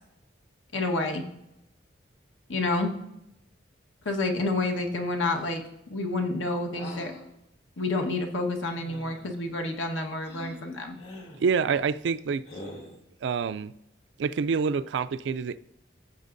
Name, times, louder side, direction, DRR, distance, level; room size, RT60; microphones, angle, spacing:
voice 1, 0.7-1.2 2.5-2.9 4.0-5.6 5.9-7.1 7.8-11.0, left 2 dB, 85° left, 1.4 m, -29 dB
sound 1, 6.7-7.2 8.7-9.3 10.2-10.6 11.0-11.4 12.5-13.0, left 1 dB, 60° left, 2.4 m, -43 dB
voice 2, 11.4-12.4 13.2-13.7 14.2-15.6, right 5 dB, 70° right, 0.3 m, -27 dB
15.0 x 7.2 x 2.6 m
head